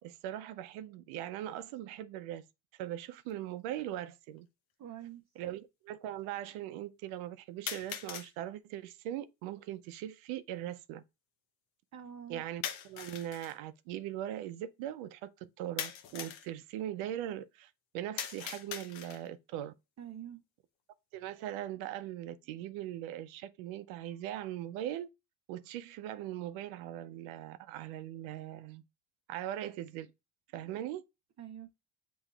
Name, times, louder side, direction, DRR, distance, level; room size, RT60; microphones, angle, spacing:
voice 1, 0.0-2.5 2.7-4.5 5.4-11.0 12.3-19.7 21.1-25.1 25.5-28.8 29.3-30.1 30.5-31.0, right 12 dB, 90° right, 0.6 m, -40 dB
sound 1, 3.3-3.4 4.4-4.5 7.7-8.3 12.6-13.6 15.8-16.5 18.2-19.3, left 9 dB, 80° left, 0.8 m, -40 dB
voice 2, 4.8-5.2 11.9-12.4 20.0-20.4 31.4-31.7, right 10 dB, 35° right, 0.6 m, -45 dB
7.3 x 3.0 x 2.3 m
supercardioid pair, 85°, 46 cm